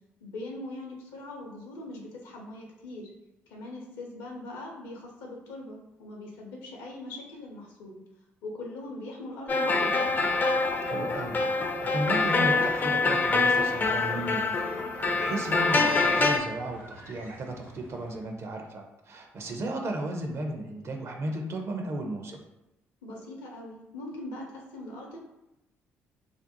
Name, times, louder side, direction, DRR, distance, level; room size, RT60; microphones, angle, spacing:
voice 1, 0.2-3.1 3.5-8.0 8.4-10.4 23.0-25.2, left 2 dB, 70° left, -1 dB, 0.6 m, -41 dB
sound 1, 9.5-16.4, left 3 dB, 30° left, 0.4 m, -25 dB
sound 2, 9.7-18.3, right 1 dB, 80° right, 1.1 m, -45 dB
voice 2, 10.8-11.4 11.8-14.4 15.1-22.4, right 1 dB, 40° right, 3 dB, 0.5 m, -34 dB
2.5 x 2.0 x 2.7 m, 0.90 s
figure-of-eight pair, 45°, 7 cm